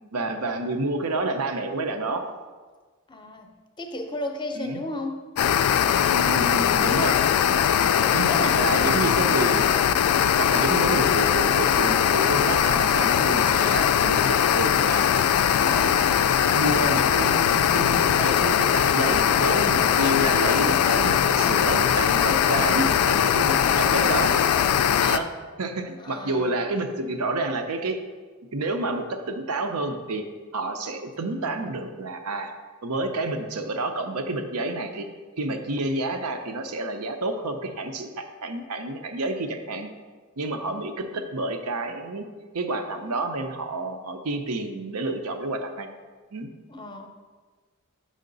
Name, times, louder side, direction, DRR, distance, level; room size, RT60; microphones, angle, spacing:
voice 1, 0.1-2.3 4.6-4.8 6.1-7.2 8.1-9.7 10.4-15.1 15.7-16.3 16.5-24.4 25.0-25.3 25.6-28.0 28.4-30.3 30.5-32.5 32.8-35.1 35.4-39.9 40.4-42.2 42.5-45.9 46.3-46.5, right 2 dB, 85° right, 6 dB, 0.7 m, -29 dB
voice 2, 3.1-5.3 8.0-8.9 26.0-26.7 46.7-47.1, left 1 dB, 20° left, 5 dB, 0.6 m, -34 dB
sound 1, 5.4-25.2, left 9 dB, 80° left, 0.3 m, -21 dB
6.4 x 5.6 x 3.9 m, 1.4 s
head